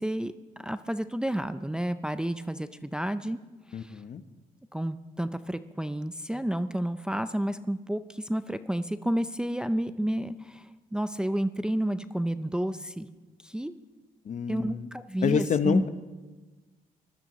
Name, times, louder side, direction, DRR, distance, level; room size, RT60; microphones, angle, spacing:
voice 1, 0.0-3.4 3.7-4.0 4.7-13.1 13.4-13.7 14.5-15.9, right 1 dB, 5° right, 10 dB, 0.5 m, -31 dB
voice 2, 3.7-4.2 14.2-14.9 15.2-15.9, left 6 dB, 50° left, 11 dB, 0.8 m, -27 dB
20.5 x 13.5 x 3.1 m, 1.2 s
cardioid pair, 95°, 15 cm